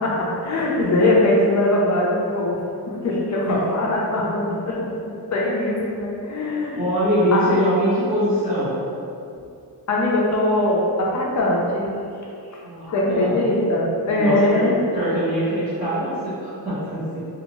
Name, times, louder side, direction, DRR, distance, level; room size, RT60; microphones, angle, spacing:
voice 1, 0.0-2.6 2.9-4.8 5.3-6.8 7.3-7.4 9.9-11.9 12.9-14.7, left 1 dB, 50° left, -3 dB, 0.4 m, -21 dB
voice 2, 6.7-8.7 12.6-13.4 14.1-17.2, equal, 20° right, -14 dB, 0.9 m, -23 dB
2.6 x 2.4 x 2.9 m, 2.5 s
wide cardioid pair, 175°, 39 cm